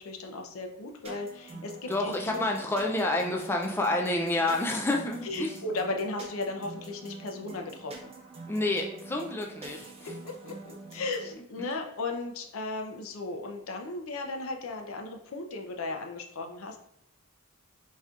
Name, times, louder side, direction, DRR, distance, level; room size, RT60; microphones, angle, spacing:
voice 1, 0.0-2.4 5.2-8.1 10.0-16.8, left 2 dB, 70° left, 3 dB, 0.6 m, -36 dB
sound 1, 1.0-11.3, right 3 dB, 30° right, 0.7 m, -46 dB
voice 2, 1.9-5.5 8.5-10.1 11.6-11.7, left 2 dB, 10° left, 1 dB, 0.3 m, -29 dB
4.1 x 3.6 x 2.4 m, 0.77 s
head